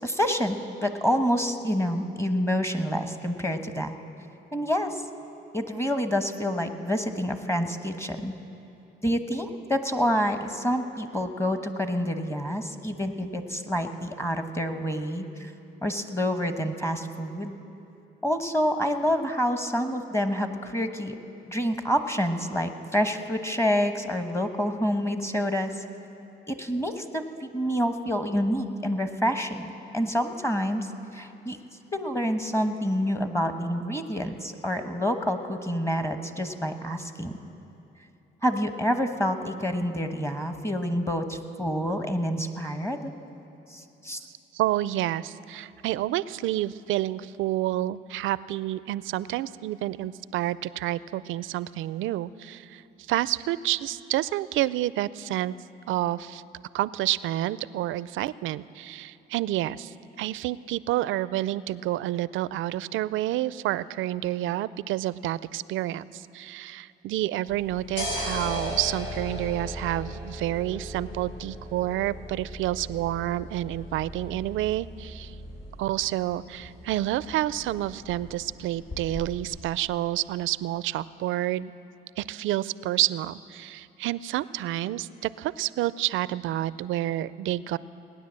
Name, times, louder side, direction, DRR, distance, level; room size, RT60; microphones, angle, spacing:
voice 1, 0.0-4.0 4.5-5.0 5.5-8.3 9.0-15.5 15.8-17.5 18.2-21.2 21.5-25.8 26.5-31.6 31.9-37.3 38.4-43.1 43.7-44.2, equal, 15° left, 8 dB, 1.1 m, -28 dB
voice 2, 44.2-52.8 53.1-55.5 55.9-56.4 56.7-75.3 75.8-81.7 82.2-87.8, right 14 dB, 80° right, 18 dB, 0.4 m, -29 dB
sound 1, 67.5-79.6, left 1 dB, 65° left, 3.8 m, -38 dB
18.5 x 10.0 x 7.5 m, 2.8 s
cardioid pair, 90°, 20 cm